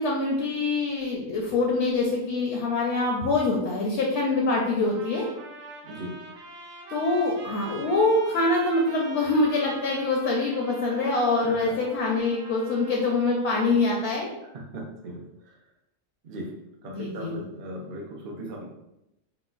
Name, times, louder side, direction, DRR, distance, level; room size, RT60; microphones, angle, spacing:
voice 1, 0.0-5.3 6.9-14.3 16.9-17.4, left 3 dB, 65° left, -2 dB, 0.8 m, -25 dB
sound 1, 4.8-13.2, right 3 dB, 90° right, 1.0 m, -43 dB
voice 2, 5.8-6.2 11.4-11.5 14.5-15.5 16.2-16.5 16.8-18.6, right 1 dB, 60° right, -1 dB, 0.5 m, -38 dB
3.7 x 2.1 x 2.4 m, 0.88 s
omnidirectional pair, 1.4 m